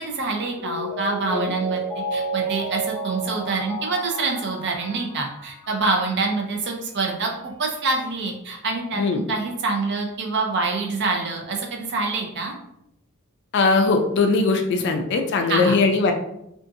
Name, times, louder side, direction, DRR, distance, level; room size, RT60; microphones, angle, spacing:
voice 1, 0.0-1.8 2.1-12.5 15.5-15.8, right 3 dB, 50° right, 1 dB, 0.5 m, -26 dB
Mallet percussion, 0.6-6.1 6.4-6.5, right 3 dB, 5° left, 0.6 m, -31 dB
voice 2, 13.5-16.1, left 3 dB, 50° left, 4 dB, 0.3 m, -20 dB
2.6 x 2.4 x 2.5 m, 0.80 s
head